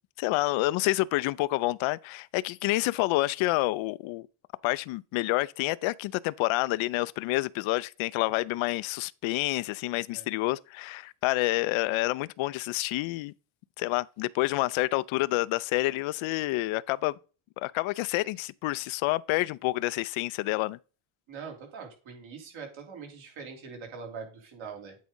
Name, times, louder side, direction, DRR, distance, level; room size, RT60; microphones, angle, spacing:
voice 1, 0.2-4.3 4.6-13.3 13.8-17.2 17.6-20.8, left 19 dB, 75° left, 0.5 m, -28 dB
voice 2, 21.3-25.0, right 5 dB, 70° right, 3.3 m, -43 dB
8.5 x 3.7 x 5.3 m
cardioid pair, 95°, 49 cm